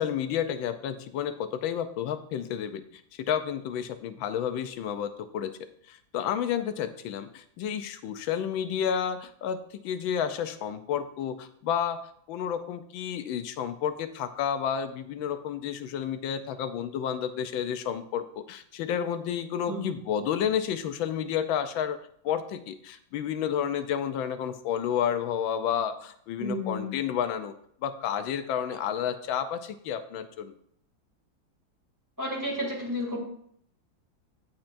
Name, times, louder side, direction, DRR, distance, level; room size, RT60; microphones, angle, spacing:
voice 1, 0.0-2.8 3.2-5.5 5.9-22.0 22.2-27.5 27.8-30.5, left 8 dB, 85° left, 9 dB, 1.4 m, -31 dB
voice 2, 26.4-26.9 32.2-33.2, left 1 dB, 10° right, -3 dB, 2.4 m, -32 dB
16.0 x 5.9 x 2.6 m, 0.65 s
omnidirectional pair, 2.1 m